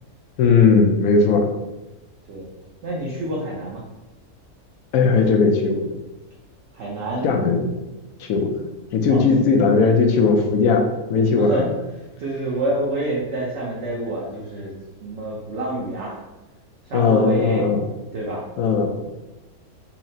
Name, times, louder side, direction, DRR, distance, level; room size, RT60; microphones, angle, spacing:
voice 1, 0.4-1.5 4.9-5.8 7.2-7.7 8.2-8.5 8.9-11.5 16.9-17.8 18.6-18.9, left 4 dB, 75° left, 3 dB, 1.0 m, -17 dB
voice 2, 2.8-3.8 6.7-7.5 7.8-7.9 9.1-9.2 11.4-16.2 16.8-17.6 18.1-18.4, right 1 dB, 60° right, -4 dB, 0.9 m, -28 dB
5.6 x 2.0 x 2.7 m, 1.1 s
omnidirectional pair, 1.6 m